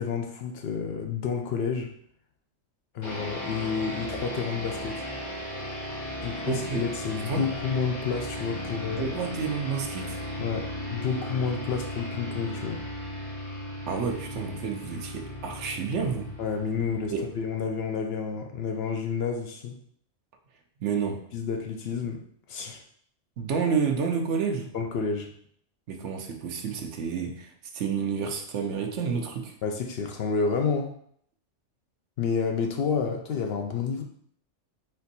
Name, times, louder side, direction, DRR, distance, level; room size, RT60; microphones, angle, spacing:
voice 1, 0.0-1.9 2.9-5.0 6.2-9.1 10.4-12.8 16.4-19.8 21.3-22.2 22.5-22.8 24.7-25.3 29.6-30.9 32.2-34.0, left 5 dB, 65° left, 4 dB, 0.7 m, -30 dB
sound 1, 3.0-17.8, equal, 40° left, 1.2 m, -36 dB
voice 2, 6.5-6.8 7.3-7.4 9.0-10.2 13.9-16.3 17.1-17.3 20.8-21.2 23.4-24.7 25.9-29.6, right 6 dB, 75° right, 3 dB, 1.0 m, -30 dB
4.3 x 2.6 x 4.0 m, 0.65 s
omnidirectional pair, 1.2 m